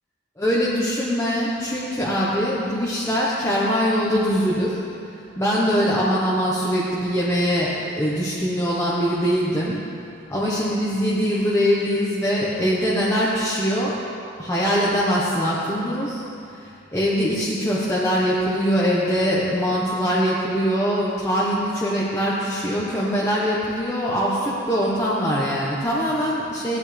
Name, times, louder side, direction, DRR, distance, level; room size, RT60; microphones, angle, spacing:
voice 1, 0.4-4.8 5.4-9.8 10.3-14.0 14.4-26.8, equal, 15° left, -8 dB, 1.3 m, -22 dB
17.5 x 12.5 x 3.5 m, 2.6 s
head